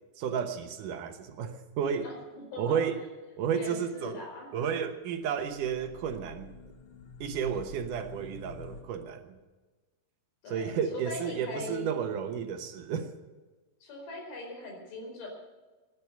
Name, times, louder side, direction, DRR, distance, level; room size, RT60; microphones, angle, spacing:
voice 1, 0.2-2.1 2.6-3.0 3.4-4.2 4.5-6.5 7.2-9.2 10.5-13.1, right 7 dB, 70° right, 7 dB, 2.5 m, -32 dB
voice 2, 2.0-2.8 3.5-4.5 10.4-11.9 13.8-15.3, left 2 dB, 85° left, 1 dB, 6.5 m, -40 dB
sound 1, 5.4-8.8, left 3 dB, 50° left, 1.8 m, -47 dB
18.0 x 11.0 x 6.8 m, 1.2 s
omnidirectional pair, 4.2 m